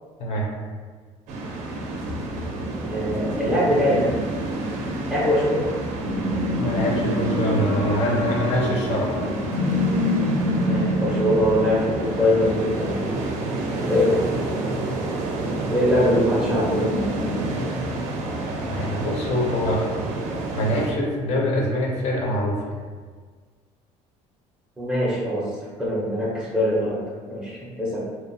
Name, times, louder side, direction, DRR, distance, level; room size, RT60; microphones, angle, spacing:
sound 1, 1.3-20.9, right 2 dB, 65° right, 0.4 m, -29 dB
voice 1, 2.9-4.1 5.1-5.7 10.6-13.2 13.8-14.2 15.7-16.9 24.8-25.5 25.8-27.0 27.3-28.0, left 1 dB, 5° right, -7 dB, 0.4 m, -22 dB
sound 2, 6.0-17.7, left 1 dB, 85° left, 0.9 m, -28 dB
voice 2, 6.6-9.3 18.7-19.9 20.5-22.8, equal, 55° left, -1 dB, 0.5 m, -24 dB
2.7 x 2.0 x 2.5 m, 1.5 s
cardioid pair, 165°, 13 cm